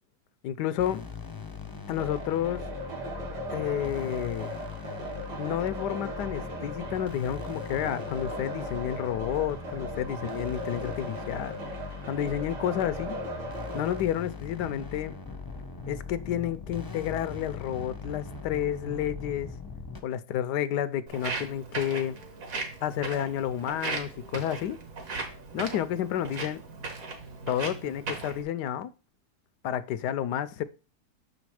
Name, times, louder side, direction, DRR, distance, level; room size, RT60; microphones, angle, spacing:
voice 1, 0.4-1.1 1.9-2.6 3.5-4.5 5.4-11.6 12.1-13.2 13.7-15.2 15.9-19.5 20.0-22.2 22.8-24.8 25.5-26.6 27.5-28.9 29.6-30.6, left 10 dB, 85° left, 1.2 m, -30 dB
sound 1, 0.8-20.0, left 5 dB, 20° left, 0.6 m, -40 dB
sound 2, 2.0-14.0, right 1 dB, 90° right, 2.2 m, -38 dB
Walk footsteps, 21.1-28.4, right 3 dB, 55° right, 1.9 m, -37 dB
6.4 x 5.2 x 4.8 m
omnidirectional pair, 1.8 m